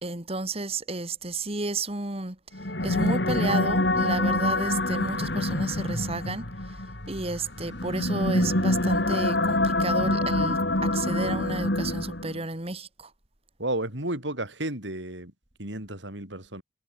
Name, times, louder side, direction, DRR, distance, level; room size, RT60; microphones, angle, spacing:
voice 1, 0.0-2.4 2.8-6.5 7.1-13.1, right 3 dB, 30° right, 2.5 m, -32 dB
sound 1, 2.5-12.4, left 1 dB, 60° left, 3.9 m, -26 dB
voice 2, 13.6-15.3 15.6-16.6, right 1 dB, 70° right, 7.6 m, -32 dB
head